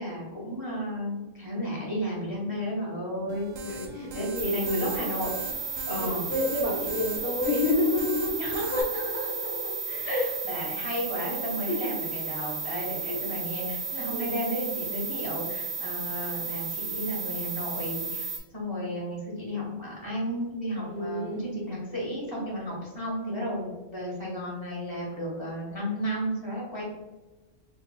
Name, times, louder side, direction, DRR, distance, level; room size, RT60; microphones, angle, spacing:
voice 1, 0.0-3.5 4.1-5.3 5.9-6.2 8.4-9.8 10.0-26.8, equal, 20° left, -6 dB, 1.6 m, -33 dB
sound 1, 3.3-8.8, right 2 dB, 80° right, 0.9 m, -41 dB
voice 2, 3.7-4.8 5.9-8.9 9.9-10.3 10.9-11.0 11.7-11.9 13.1-13.2 14.1-14.5 20.9-21.5, left 2 dB, 50° left, -4 dB, 0.9 m, -29 dB
sound 2, 4.4-18.4, right 5 dB, 40° right, 0.6 m, -34 dB
4.2 x 3.0 x 2.3 m, 1.1 s
omnidirectional pair, 1.3 m